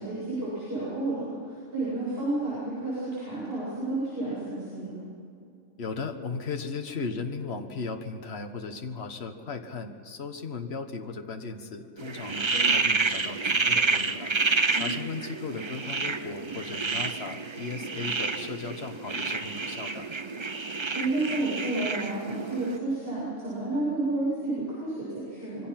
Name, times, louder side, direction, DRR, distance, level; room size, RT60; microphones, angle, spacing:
voice 1, 0.0-4.9 12.4-12.6 14.7-14.9 20.9-25.7, right 2 dB, 45° right, -9 dB, 8.2 m, -31 dB
voice 2, 5.8-14.3 14.7-20.1, left 4 dB, 55° left, 5 dB, 1.7 m, -36 dB
sound 1, 12.0-22.8, right 4 dB, 25° right, 0.7 m, -29 dB
26.5 x 23.5 x 6.0 m, 2.5 s
omnidirectional pair, 1.3 m